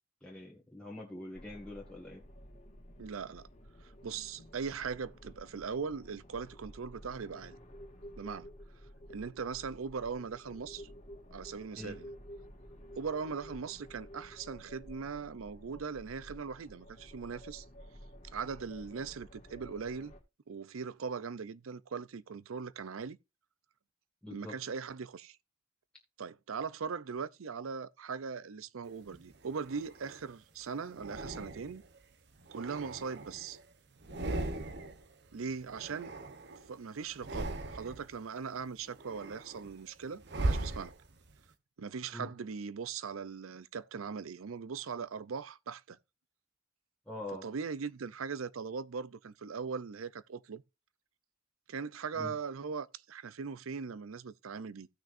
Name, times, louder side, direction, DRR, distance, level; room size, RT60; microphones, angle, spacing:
voice 1, 0.2-2.2 11.7-12.0 24.2-24.5 42.1-42.3 47.1-47.5 52.1-52.3, left 1 dB, 5° left, 1.9 m, -44 dB
sound 1, 1.3-20.2, equal, 35° left, 2.0 m, -52 dB
voice 2, 3.0-3.5 4.0-7.6 8.2-8.5 9.1-10.9 11.3-12.1 13.0-17.6 18.3-20.1 20.5-23.2 24.3-25.4 26.2-31.8 32.5-33.6 35.3-36.1 36.7-40.9 41.8-46.0 47.4-50.6 51.7-54.9, right 5 dB, 85° right, 0.5 m, -40 dB
sound 2, 29.1-30.3 31.0-31.9 32.4-33.6 34.0-35.1 35.3-36.7 37.1-38.1 38.6-41.4, right 2 dB, 55° right, 1.0 m, -39 dB
16.0 x 6.0 x 2.6 m
head